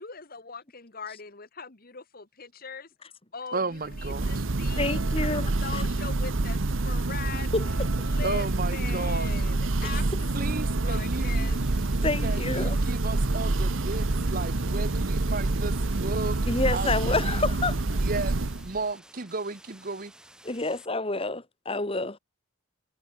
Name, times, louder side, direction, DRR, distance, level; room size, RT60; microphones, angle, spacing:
voice 1, 0.0-2.9 3.3-7.5 8.0-11.6, left 5 dB, 45° left, 1.6 m, -41 dB
voice 2, 3.5-4.4 8.2-9.3 10.3-11.3 12.2-16.4 16.7-17.4 18.0-20.1, right 3 dB, 40° right, 1.2 m, -34 dB
Church bell, 3.9-18.8, right 2 dB, 65° right, 1.1 m, -27 dB
voice 3, 4.8-5.8 7.5-8.1 9.8-10.0 10.5-10.6 11.4-11.5 12.0-12.8 16.5-17.8 20.4-22.2, left 2 dB, 25° left, 1.8 m, -29 dB
sound 1, 10.9-20.9, right 1 dB, 5° right, 6.1 m, -53 dB
head